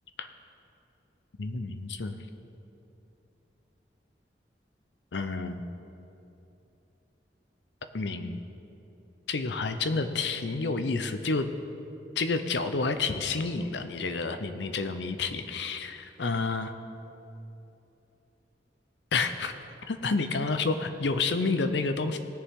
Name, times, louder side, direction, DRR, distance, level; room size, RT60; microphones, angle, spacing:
voice 1, 1.4-2.2 5.1-5.6 7.9-8.4 9.3-11.5 12.2-16.7 19.1-19.5 19.9-22.2, left 3 dB, 80° left, 9 dB, 0.7 m, -29 dB
19.0 x 6.9 x 3.7 m, 2.9 s
head